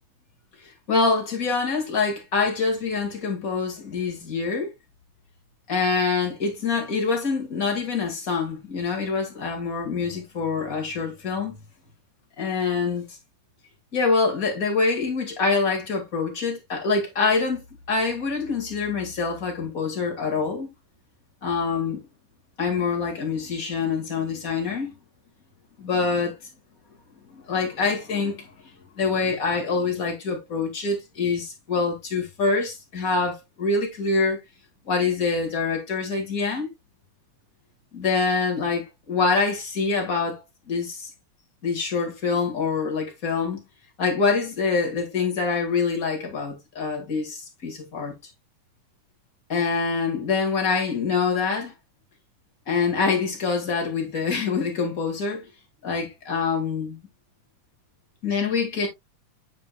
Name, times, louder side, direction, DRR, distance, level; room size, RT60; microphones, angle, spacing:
voice 1, 0.9-4.7 5.7-11.6 12.4-13.0 13.9-17.6 17.9-20.7 21.4-22.0 22.6-24.9 25.8-26.3 27.5-28.5 29.0-34.4 34.9-36.7 37.9-40.4 40.7-41.1 41.6-43.6 44.0-48.1 49.5-51.7 52.7-55.4 55.8-57.0 58.2-58.9, left 4 dB, 30° left, 2.0 m, -25 dB
9.2 x 5.1 x 2.3 m
omnidirectional pair, 3.8 m